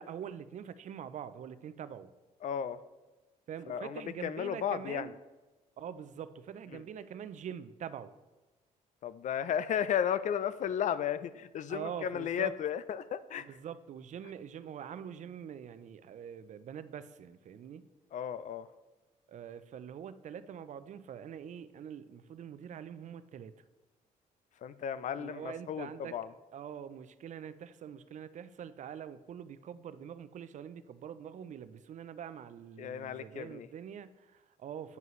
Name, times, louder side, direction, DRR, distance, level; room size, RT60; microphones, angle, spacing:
voice 1, 0.0-2.1 3.5-5.1 5.8-8.1 11.7-12.5 13.4-17.9 19.3-23.5 25.2-26.1 26.5-35.0, right 8 dB, 50° right, 14 dB, 0.4 m, -44 dB
voice 2, 2.4-2.8 3.7-5.1 6.7-6.8 9.0-13.5 18.1-18.7 24.6-26.3 32.8-33.7, left 9 dB, 55° left, 15 dB, 0.4 m, -34 dB
9.2 x 5.5 x 3.1 m, 1.2 s
cardioid pair, 85°, 16 cm